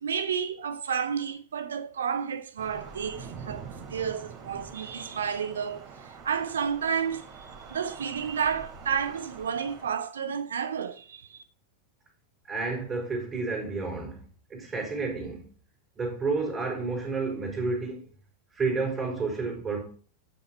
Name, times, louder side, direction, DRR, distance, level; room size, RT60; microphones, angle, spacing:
voice 1, 0.0-3.6 3.9-11.4, right 7 dB, 65° right, 1.0 m, -31 dB
Thunder / Rain, 2.6-9.9, right 5 dB, 40° right, 3.5 m, -45 dB
voice 2, 12.5-14.2 14.5-15.4 16.0-18.1 18.5-19.8, right 4 dB, 25° right, 4.8 m, -30 dB
12.0 x 6.2 x 4.5 m
figure-of-eight pair, 90°, 0 cm